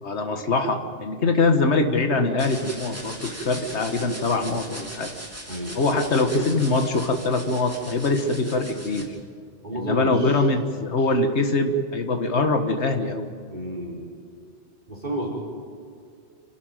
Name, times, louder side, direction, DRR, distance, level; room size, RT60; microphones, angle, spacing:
voice 1, 0.0-5.1 5.7-9.1 9.7-13.3, left 3 dB, 70° left, 6 dB, 1.8 m, -23 dB
sound 1, 2.4-9.0, equal, 10° right, 3.1 m, -39 dB
voice 2, 5.5-6.0 9.6-10.4 13.5-14.0 14.9-15.3, right 1 dB, 40° right, -1 dB, 4.6 m, -30 dB
27.0 x 12.5 x 9.2 m, 2.3 s
omnidirectional pair, 1.2 m